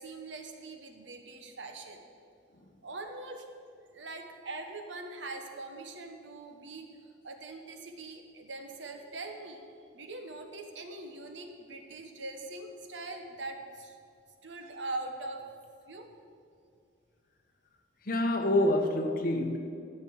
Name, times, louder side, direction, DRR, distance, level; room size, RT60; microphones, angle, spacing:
voice 1, 0.0-2.1 2.8-3.5 3.8-6.9 7.2-9.6 9.9-14.0 14.4-15.4 15.9-16.1, right 2 dB, 75° right, 5 dB, 1.2 m, -42 dB
voice 2, 18.0-19.6, left 1 dB, 50° left, 4 dB, 1.1 m, -27 dB
12.5 x 5.4 x 8.6 m, 2.4 s
head